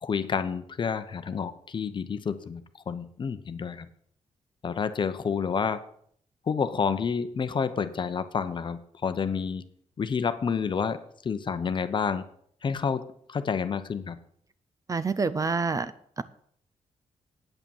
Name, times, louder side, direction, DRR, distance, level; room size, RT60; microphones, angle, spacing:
voice 1, 0.0-3.9 4.6-5.9 6.5-9.7 10.0-12.2 12.6-14.2, left 6 dB, 40° left, 11 dB, 0.8 m, -29 dB
voice 2, 14.9-16.2, right 4 dB, 30° right, 14 dB, 0.5 m, -28 dB
9.0 x 8.6 x 7.2 m, 0.63 s
wide cardioid pair, 140°, 12 cm